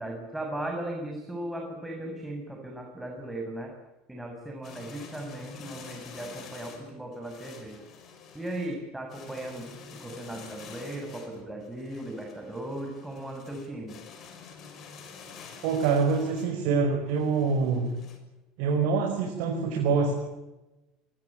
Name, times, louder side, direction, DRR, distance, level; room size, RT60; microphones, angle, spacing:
voice 1, 0.0-3.7 4.1-7.8 8.3-9.7 10.0-14.0, right 1 dB, 10° right, 1 dB, 7.2 m, -37 dB
sound 1, 4.6-18.2, left 5 dB, 50° left, 7.2 m, -48 dB
voice 2, 15.6-17.9 18.6-20.1, right 5 dB, 65° right, 3 dB, 5.3 m, -25 dB
25.5 x 23.5 x 8.9 m, 1.0 s
hypercardioid pair, 70°, 0 cm